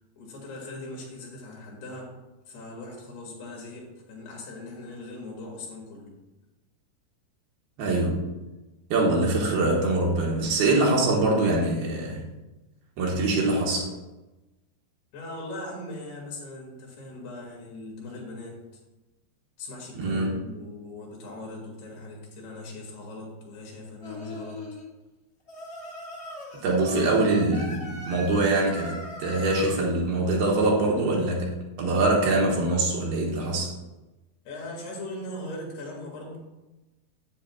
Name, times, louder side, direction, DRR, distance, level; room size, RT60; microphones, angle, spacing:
voice 1, 0.2-2.1 2.5-6.1 15.1-18.5 19.6-24.6 34.4-36.4, left 2 dB, 70° left, -2 dB, 4.1 m, -40 dB
voice 2, 7.8-8.3 8.9-12.3 13.0-13.9 20.0-20.4 26.6-33.7, right 2 dB, 70° right, -2 dB, 3.1 m, -24 dB
Singing, 24.0-24.9 25.5-29.7, left 1 dB, 45° left, 0.8 m, -39 dB
10.0 x 9.0 x 2.4 m, 1.1 s
omnidirectional pair, 4.8 m